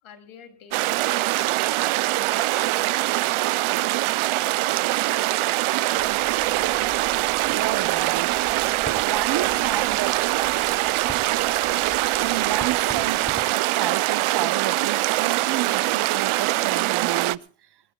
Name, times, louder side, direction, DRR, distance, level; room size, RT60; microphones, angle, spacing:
voice 1, 0.0-1.3 1.9-3.4 3.9-4.5, left 7 dB, 70° left, 2.9 m, -49 dB
sound 1, 0.7-17.4, right 17 dB, 75° right, 0.6 m, -23 dB
sound 2, 5.9-13.4, left 1 dB, 15° left, 2.6 m, -43 dB
voice 2, 7.4-8.4 9.0-10.3 12.2-17.5, right 11 dB, 50° right, 0.9 m, -31 dB
22.0 x 20.5 x 2.2 m
cardioid pair, 100°, 50 cm